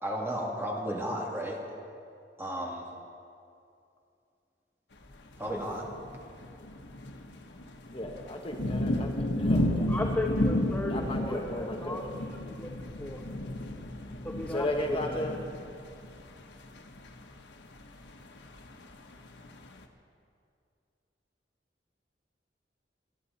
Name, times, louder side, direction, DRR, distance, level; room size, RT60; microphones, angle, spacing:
voice 1, 0.0-1.6 2.4-2.9 5.4-5.9, equal, 15° right, -2 dB, 2.6 m, -33 dB
sound 1, 5.1-19.8, left 1 dB, 90° left, 1.3 m, -33 dB
voice 2, 7.9-10.2 10.9-12.1 14.5-15.4, left 1 dB, 30° left, 1 dB, 1.4 m, -35 dB
voice 3, 9.9-12.0 12.5-12.7 13.0-13.2 14.2-15.0, left 1 dB, 10° left, 0 dB, 1.0 m, -35 dB
26.0 x 11.5 x 4.2 m, 2.5 s
head